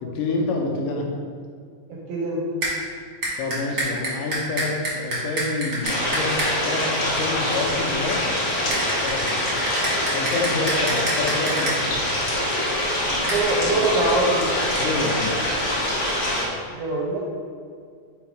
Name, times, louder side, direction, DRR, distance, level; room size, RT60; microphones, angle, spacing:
voice 1, 0.0-1.1 3.4-8.3 9.0-9.4 10.1-12.0 14.8-15.8, left 3 dB, 80° left, 0 dB, 2.2 m, -28 dB
voice 2, 1.9-2.5 13.2-14.5 16.7-17.2, right 2 dB, 75° right, -3 dB, 1.8 m, -23 dB
sound 1, 2.6-2.7 3.2-6.5 8.7-11.8 13.3-13.4, right 1 dB, 45° right, 1.3 m, -27 dB
sound 2, 5.8-16.4, left 1 dB, 50° left, 2.1 m, -24 dB
6.3 x 3.6 x 4.7 m, 2.1 s
omnidirectional pair, 4.0 m